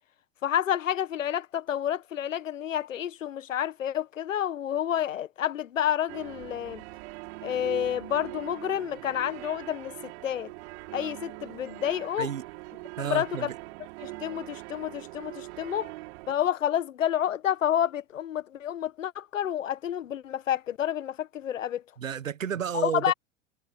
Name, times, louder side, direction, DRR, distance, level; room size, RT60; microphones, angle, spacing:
voice 1, 0.4-6.8 7.4-10.5 10.9-12.3 13.0-13.5 14.0-15.9 16.3-21.8 22.8-23.1, left 10 dB, 80° left, 1.3 m, -29 dB
sound 1, 6.1-16.3, right 23 dB, 60° right, 5.4 m, -42 dB
voice 2, 13.0-13.6 22.0-23.1, right 8 dB, 85° right, 1.3 m, -31 dB
hypercardioid pair, 95°, 38 cm